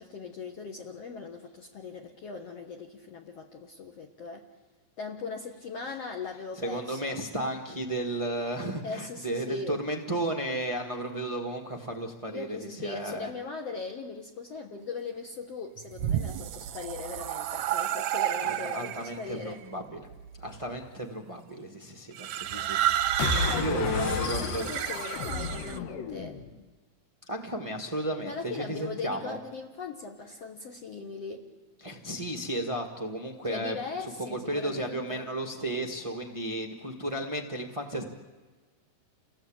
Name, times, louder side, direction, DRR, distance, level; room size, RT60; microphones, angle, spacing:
voice 1, 0.0-4.5 5.0-7.2 8.8-9.8 12.3-19.6 23.4-26.4 28.3-31.5 33.5-35.3, left 4 dB, 55° left, 2 dB, 2.2 m, -39 dB
voice 2, 6.5-13.3 18.4-20.1 20.4-24.7 27.3-29.4 31.8-33.8 34.2-38.0, right 1 dB, 25° right, 2 dB, 0.6 m, -34 dB
sound 1, 15.8-19.2 20.1-20.6 22.1-25.8, right 11 dB, 70° right, 1.9 m, -31 dB
sound 2, 23.2-26.6, left 5 dB, 80° left, 3.2 m, -32 dB
29.0 x 18.5 x 8.8 m, 1.3 s
omnidirectional pair, 4.0 m